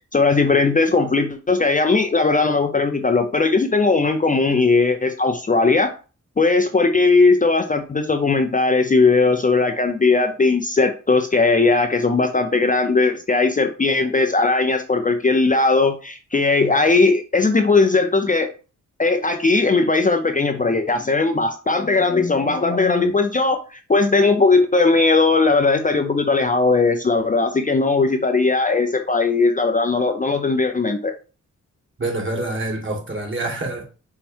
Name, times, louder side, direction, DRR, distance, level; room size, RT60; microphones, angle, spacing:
voice 1, 0.1-5.9 6.4-18.5 19.0-31.1, left 3 dB, 25° left, 0.5 m, -18 dB
voice 2, 32.0-33.8, right 2 dB, 40° right, 1.8 m, -26 dB
5.5 x 2.2 x 4.4 m
cardioid pair, 70°, 31 cm